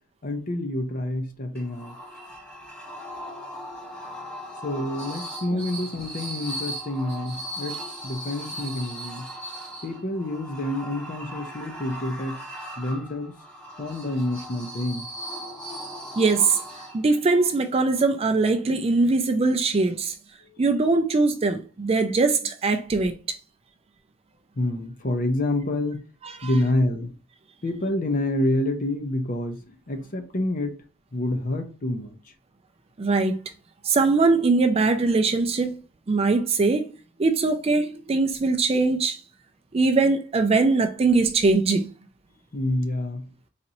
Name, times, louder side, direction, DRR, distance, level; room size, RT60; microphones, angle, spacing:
voice 1, 0.2-1.9 4.6-9.3 9.8-12.4 12.8-13.3 13.8-15.1 24.6-26.0 26.4-27.2 27.6-30.8 31.1-32.2 42.5-43.3, left 1 dB, 40° left, 0.6 m, -28 dB
sound 1, 1.5-17.3, right 1 dB, 5° left, 0.9 m, -38 dB
voice 2, 16.2-16.6 16.9-20.1 20.6-23.1 26.4-26.5 33.0-33.4 33.8-35.8 36.1-36.8 37.2-39.2 39.7-41.9, right 3 dB, 25° right, 0.4 m, -21 dB
4.0 x 3.0 x 2.5 m
head